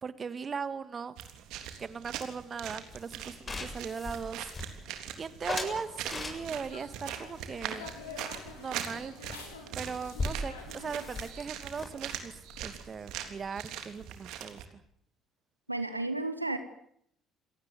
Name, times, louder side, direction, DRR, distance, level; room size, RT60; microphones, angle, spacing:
voice 1, 0.0-1.2 1.8-4.5 5.2-7.9 8.6-9.1 9.7-14.6, right 6 dB, 35° right, 14 dB, 1.9 m, -39 dB
sound 1, 1.2-14.6, right 10 dB, 60° right, 3.4 m, -42 dB
sound 2, 2.9-5.0 5.5-6.8 7.3-8.6 8.9-9.0 9.3-9.4 9.6-13.5, left 3 dB, 30° left, 7.4 m, -40 dB
sound 3, 6.1-11.2, left 5 dB, 75° left, 5.6 m, -48 dB
voice 2, 15.7-16.6, right 2 dB, 90° right, 10 dB, 1.5 m, -32 dB
28.5 x 18.0 x 9.6 m, 0.70 s
figure-of-eight pair, 55°, 0 cm